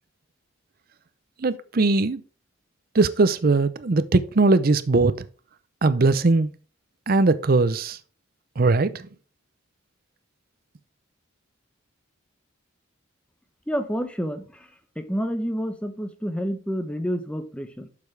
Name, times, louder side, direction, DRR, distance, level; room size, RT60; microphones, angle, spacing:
voice 1, 1.4-2.2 2.9-5.2 5.8-6.5 7.1-8.0 8.6-9.0, right 3 dB, 45° right, 0.6 m, -20 dB
voice 2, 13.7-14.7 15.0-17.9, equal, 5° left, 0.8 m, -29 dB
8.2 x 6.8 x 3.3 m
head